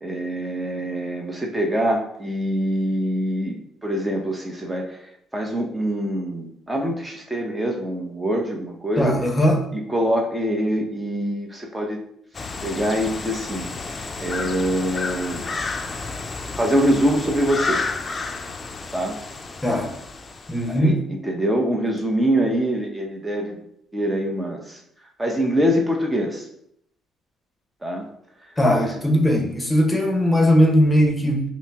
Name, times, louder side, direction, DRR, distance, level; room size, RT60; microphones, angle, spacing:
voice 1, 0.0-3.6 3.8-4.9 5.3-9.1 9.7-12.0 12.6-13.7 14.2-15.4 16.6-17.8 18.9-19.2 20.7-21.0 21.2-23.6 23.9-24.8 25.2-26.4 27.8-28.0 28.7-28.9, equal, 15° right, 1 dB, 0.7 m, -24 dB
voice 2, 9.0-9.6 19.6-19.9 20.5-21.0 28.6-31.4, equal, 15° left, 2 dB, 0.9 m, -19 dB
sound 1, 12.3-20.8, left 4 dB, 35° left, 0.4 m, -31 dB
5.3 x 2.0 x 3.5 m, 0.71 s
supercardioid pair, 65°, 0 cm